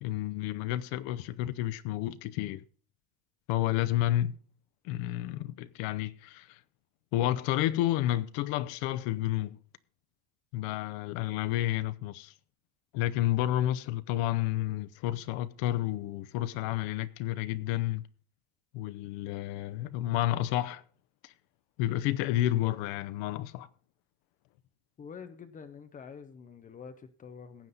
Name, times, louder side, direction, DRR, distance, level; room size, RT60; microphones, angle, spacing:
voice 1, 0.0-2.6 3.5-4.4 4.8-6.6 7.1-9.6 10.5-12.3 12.9-18.0 18.7-20.8 21.2-21.3 21.8-23.7, left 14 dB, 70° left, 0.8 m, -30 dB
voice 2, 25.0-27.7, left 6 dB, 20° left, 0.5 m, -47 dB
15.5 x 9.5 x 4.0 m
cardioid pair, 180°, 47 cm